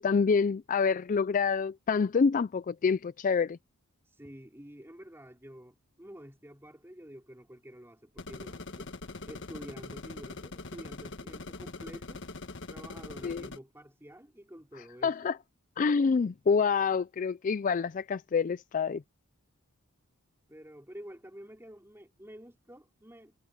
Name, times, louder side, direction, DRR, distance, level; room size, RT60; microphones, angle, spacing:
voice 1, 0.0-3.6 13.2-13.4 15.0-15.3 15.8-19.0, left 5 dB, 35° left, 0.3 m, -27 dB
voice 2, 4.1-8.9 9.3-12.2 12.7-15.3 20.5-23.3, equal, 10° right, 4.2 m, -49 dB
sound 1, 8.2-13.6, left 3 dB, 55° left, 1.5 m, -42 dB
head